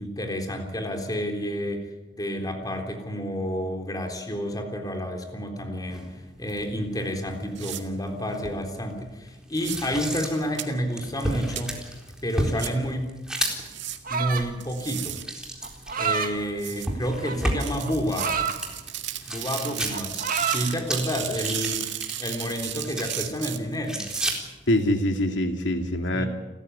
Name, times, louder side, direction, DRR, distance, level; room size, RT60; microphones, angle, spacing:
voice 1, 0.0-1.9 2.1-11.8 12.2-13.1 14.1-15.2 16.0-18.3 19.3-21.8 22.2-24.0 26.1-26.3, equal, 20° left, 4 dB, 3.6 m, -30 dB
sound 1, 5.9-25.0, right 1 dB, 5° right, 4.0 m, -35 dB
sound 2, 7.6-7.8 9.5-9.8 10.6-10.7 11.6-11.7 12.6-12.7 13.6-14.0 14.6-15.2 16.6-16.9 17.6-24.3, right 12 dB, 75° right, 2.0 m, -34 dB
sound 3, 14.0-14.6 15.6-16.3 17.2-18.6 19.1-19.3 19.6-20.7, right 6 dB, 50° right, 2.0 m, -28 dB
voice 2, 24.7-26.3, left 1 dB, 80° left, 5 dB, 2.3 m, -24 dB
29.5 x 14.0 x 9.8 m, 1.1 s
head